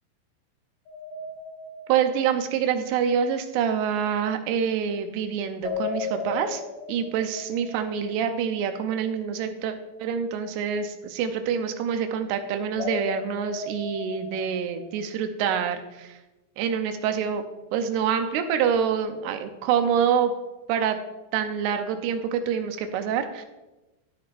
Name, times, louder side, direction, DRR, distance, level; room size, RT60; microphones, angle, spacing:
sound 1, 0.9-2.9 5.6-8.5 12.8-15.0, left 6 dB, 75° left, 2.1 m, -36 dB
voice 1, 1.9-6.6 6.9-9.7 10.0-16.2 16.6-17.4 17.7-20.3 20.7-21.0 21.3-23.4, right 7 dB, 90° right, 7 dB, 2.9 m, -26 dB
12.5 x 8.7 x 2.5 m, 1.0 s
omnidirectional pair, 4.6 m